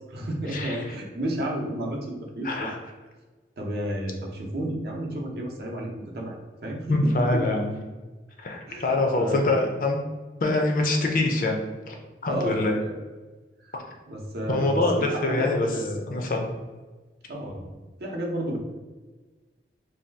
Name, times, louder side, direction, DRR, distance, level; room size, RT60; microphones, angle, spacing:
voice 1, 0.1-2.7 3.6-7.4 8.7-9.5 12.3-13.0 13.6-13.8 14.1-16.0 17.3-17.7 18.0-18.6, right 1 dB, 60° right, -1 dB, 0.6 m, -32 dB
voice 2, 2.4-2.8 6.9-7.7 8.4-10.0 10.4-11.6 11.9-12.0 12.2-12.7 14.5-15.7 16.1-16.5, left 2 dB, 50° left, 2 dB, 0.5 m, -24 dB
2.7 x 2.3 x 3.3 m, 1.3 s
head